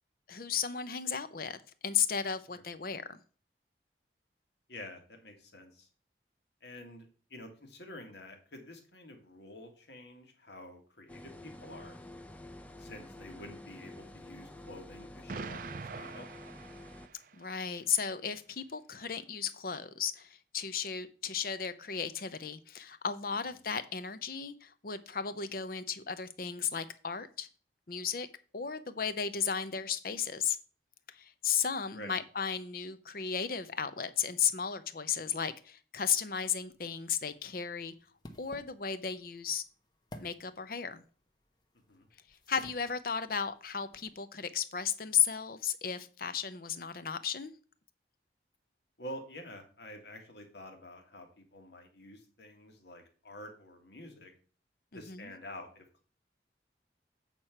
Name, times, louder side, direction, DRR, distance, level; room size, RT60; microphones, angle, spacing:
voice 1, 0.3-3.2 17.4-27.5 27.9-28.3 28.5-30.6 31.1-37.9 38.4-39.6 40.2-41.0 42.3-47.5 54.9-55.3, left 7 dB, 55° left, 12 dB, 0.7 m, -34 dB
voice 2, 4.7-5.9 6.6-7.1 7.3-12.0 12.8-16.3 31.9-32.1 41.9-42.1 49.0-54.3 54.9-56.0, left 1 dB, 75° left, 4 dB, 1.9 m, -48 dB
sound 1, 11.1-17.1, left 1 dB, 10° left, 0.5 m, -49 dB
Explosion, 15.3-17.5, right 5 dB, 50° right, 0.4 m, -44 dB
sound 2, 36.4-44.1, left 1 dB, 25° left, 0.9 m, -56 dB
8.3 x 4.4 x 5.9 m, 0.40 s
head